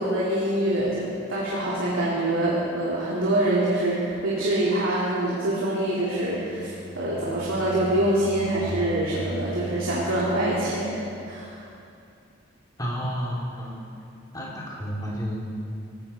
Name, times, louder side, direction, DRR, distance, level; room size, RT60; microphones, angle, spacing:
voice 1, 0.0-6.7 6.9-11.6, right 1 dB, 85° right, -7 dB, 3.2 m, -25 dB
sound 1, 6.0-11.7, right 2 dB, 85° left, 1.7 m, -39 dB
voice 2, 12.8-13.8 14.3-15.5, equal, 20° left, -5 dB, 3.2 m, -31 dB
18.5 x 16.5 x 4.5 m, 2.5 s
head